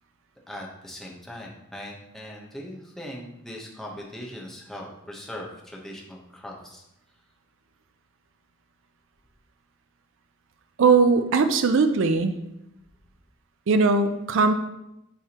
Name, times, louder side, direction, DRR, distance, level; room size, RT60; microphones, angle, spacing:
voice 1, 0.5-6.8, left 1 dB, ahead, -3 dB, 0.9 m, -40 dB
voice 2, 10.8-12.3 13.7-14.5, right 4 dB, 65° right, 8 dB, 0.4 m, -19 dB
10.0 x 3.4 x 2.9 m, 0.86 s
head